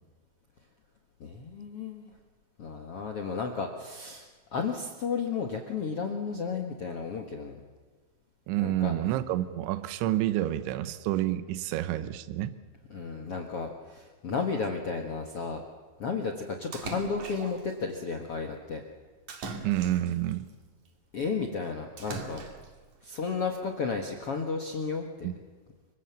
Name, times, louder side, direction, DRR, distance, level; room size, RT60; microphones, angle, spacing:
voice 1, 1.2-2.1 2.6-7.6 8.6-8.9 12.9-15.6 16.0-18.8 21.1-22.4 23.0-25.3, left 5 dB, 70° left, 3 dB, 1.3 m, -33 dB
voice 2, 8.5-12.6 19.6-20.5 25.2-25.4, right 13 dB, 80° right, 12 dB, 3.3 m, -29 dB
Splash splatter, 16.7-17.7 19.3-20.4 22.0-22.8, right 4 dB, 50° right, 3.1 m, -40 dB
26.5 x 24.0 x 7.2 m, 1.4 s
omnidirectional pair, 5.3 m